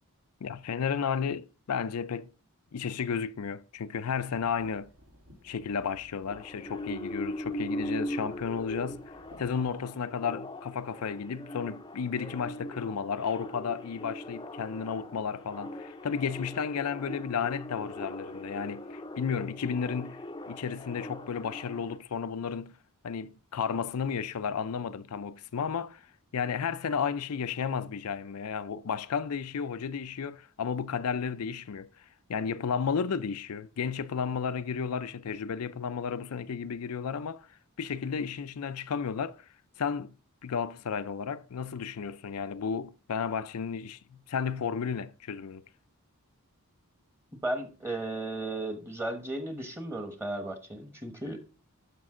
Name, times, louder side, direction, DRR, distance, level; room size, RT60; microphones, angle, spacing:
voice 1, 0.4-2.3 2.7-4.9 5.4-9.1 9.4-22.8 23.0-26.0 26.3-31.9 32.3-37.5 37.8-39.4 39.8-40.1 40.4-45.6, left 6 dB, 80° left, 0.5 m, -33 dB
sound 1, 4.2-9.7, equal, 75° right, 3.7 m, -57 dB
sound 2, 6.3-22.0, left 1 dB, 20° left, 0.6 m, -40 dB
voice 2, 47.4-51.5, right 1 dB, 10° right, 1.1 m, -35 dB
12.5 x 5.2 x 3.7 m
head